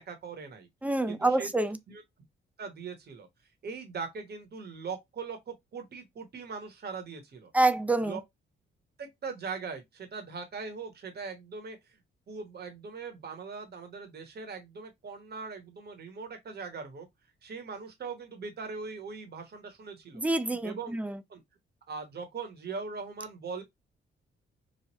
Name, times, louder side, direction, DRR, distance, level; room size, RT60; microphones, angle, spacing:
voice 1, 0.0-0.7 1.1-1.5 1.9-2.0 2.6-3.3 3.6-7.5 8.0-8.2 9.0-12.0 12.3-17.1 17.4-20.3 20.6-21.0 21.3-21.4 21.9-23.6, right 5 dB, 50° right, 1.1 m, -40 dB
voice 2, 0.8-1.8 7.5-8.2 20.1-21.2, right 2 dB, 5° right, 0.4 m, -27 dB
3.1 x 2.3 x 2.9 m
cardioid pair, 90°, 21 cm